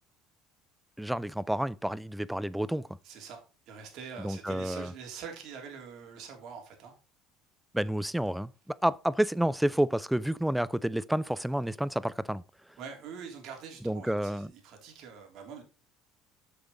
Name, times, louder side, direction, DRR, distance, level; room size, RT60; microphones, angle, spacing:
voice 1, 1.0-3.0 4.2-4.9 7.7-12.4 13.8-14.5, right 1 dB, 5° right, 0.5 m, -30 dB
voice 2, 3.0-6.9 12.8-15.6, right 6 dB, 60° right, 3.4 m, -44 dB
7.7 x 6.9 x 5.3 m
supercardioid pair, 80°, 0 cm